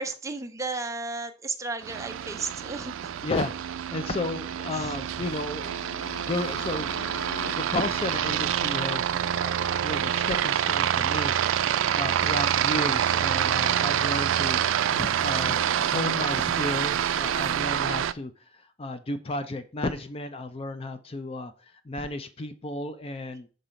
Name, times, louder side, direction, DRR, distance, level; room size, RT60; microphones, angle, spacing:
voice 1, 0.0-2.9 4.7-4.9, right 3 dB, 15° right, 0.6 m, -33 dB
Aircraft, 1.8-18.1, right 9 dB, 80° right, 0.4 m, -27 dB
voice 2, 3.2-3.5 3.9-5.8 6.2-6.9 7.4-11.4 11.7-14.6 14.9-23.5, left 2 dB, 30° left, 0.5 m, -33 dB
Motorcycle, 5.1-9.7, left 4 dB, 90° left, 0.6 m, -44 dB
5.7 x 3.9 x 5.0 m
head